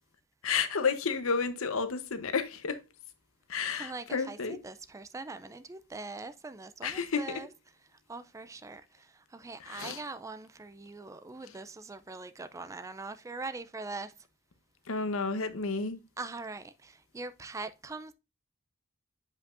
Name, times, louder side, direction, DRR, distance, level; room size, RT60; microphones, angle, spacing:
voice 1, 0.4-2.8 3.5-4.6 6.8-7.2 9.6-10.0 14.9-16.0, left 5 dB, 70° left, 0.8 m, -31 dB
voice 2, 3.8-7.5 8.1-14.1 16.2-18.1, right 3 dB, 15° right, 0.3 m, -42 dB
7.5 x 5.2 x 2.5 m
head